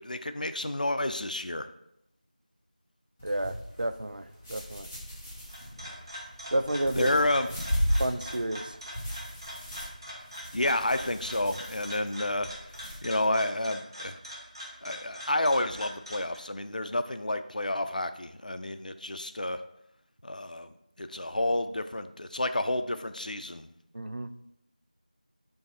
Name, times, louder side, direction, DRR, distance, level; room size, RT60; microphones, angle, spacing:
voice 1, 0.0-1.7 6.9-7.5 10.5-12.5 13.0-14.2 14.8-19.6 20.2-20.7 21.0-23.7, left 1 dB, 70° left, 10 dB, 0.4 m, -30 dB
sound 1, 3.2-13.0, equal, 15° left, 0.6 m, -36 dB
voice 2, 3.2-4.9 6.5-7.1 8.0-8.8 23.9-24.3, right 1 dB, 80° right, 10 dB, 0.4 m, -31 dB
sound 2, 5.3-16.4, equal, 30° right, 1.1 m, -43 dB
4.7 x 2.6 x 4.0 m, 0.79 s
figure-of-eight pair, 175°, 5 cm